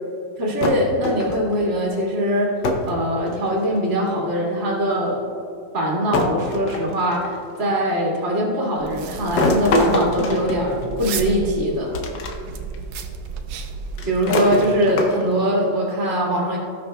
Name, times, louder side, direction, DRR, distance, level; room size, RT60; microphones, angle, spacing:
voice 1, 0.4-5.2 5.7-11.9 14.0-16.6, equal, 35° right, -4 dB, 2.3 m, -22 dB
sound 1, 0.6-1.6 2.6-3.0 3.3-3.9 4.9-5.0 6.1-7.4 9.4-11.2 11.9-12.3 12.7-12.8 14.0-15.4, left 2 dB, 70° left, 1.5 m, -24 dB
sound 2, 8.8-14.2, right 5 dB, 75° right, 1.4 m, -33 dB
18.5 x 6.3 x 2.3 m, 2.6 s
omnidirectional pair, 2.1 m